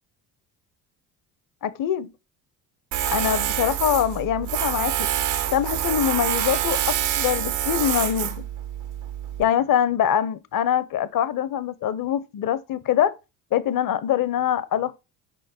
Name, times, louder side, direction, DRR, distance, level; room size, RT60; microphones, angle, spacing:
voice 1, 1.6-2.1 3.1-5.1 5.5-8.4 9.4-13.2 13.5-15.0, left 10 dB, 45° left, 0.9 m, -24 dB
Tools, 2.9-9.4, right 11 dB, 75° right, 1.4 m, -26 dB
6.6 x 4.9 x 4.3 m
hypercardioid pair, 65°, 47 cm